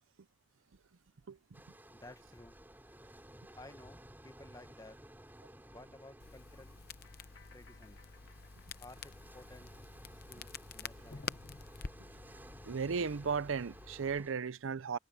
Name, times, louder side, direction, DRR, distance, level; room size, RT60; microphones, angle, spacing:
sound 1, 1.5-14.3, right 1 dB, 10° right, 3.9 m, -56 dB
voice 1, 1.9-2.6 3.6-5.0 5.6-6.7 7.5-8.0 8.8-9.7 10.3-11.4, left 1 dB, 20° left, 1.2 m, -55 dB
Crackle, 6.2-14.2, left 5 dB, 50° left, 0.8 m, -49 dB
sound 2, 7.0-9.9, left 5 dB, 75° left, 2.9 m, -65 dB
voice 2, 12.6-15.0, right 5 dB, 90° right, 0.6 m, -35 dB
head